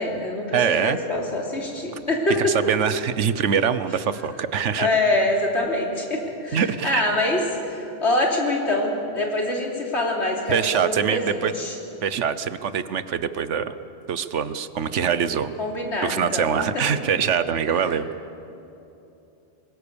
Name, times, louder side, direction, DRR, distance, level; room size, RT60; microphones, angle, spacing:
voice 1, 0.0-2.7 4.8-7.4 7.7-11.8 15.6-17.0 17.7-17.8, left 1 dB, 65° left, -1 dB, 3.7 m, -25 dB
voice 2, 0.5-1.0 2.4-4.9 6.5-7.0 10.5-11.5 12.0-13.7 14.1-15.5 16.0-18.1, right 7 dB, 75° right, 12 dB, 1.2 m, -24 dB
26.0 x 22.0 x 7.0 m, 2.9 s
omnidirectional pair, 1.2 m